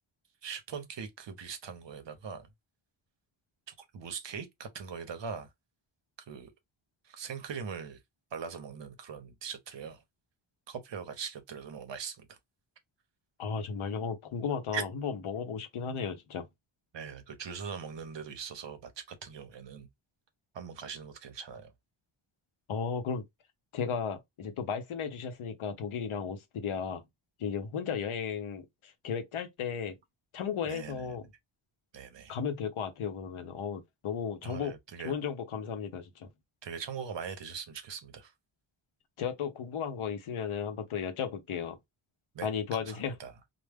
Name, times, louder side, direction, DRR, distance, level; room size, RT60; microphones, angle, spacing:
voice 1, 0.4-2.5 3.7-5.5 6.3-6.5 7.0-8.0 8.3-10.0 10.7-12.4 14.7-14.8 16.9-19.9 20.5-21.7 30.6-31.2 31.9-32.4 34.4-35.2 36.6-38.3 42.3-42.5 42.9-43.3, right 6 dB, 60° right, 0.7 m, -41 dB
voice 2, 13.4-16.5 22.7-23.2 23.7-27.0 27.4-30.0 30.3-31.3 32.3-34.7 35.0-36.3 39.2-41.8 42.4-43.2, left 6 dB, 75° left, 0.7 m, -35 dB
2.1 x 2.1 x 3.3 m
wide cardioid pair, 105°, 50 cm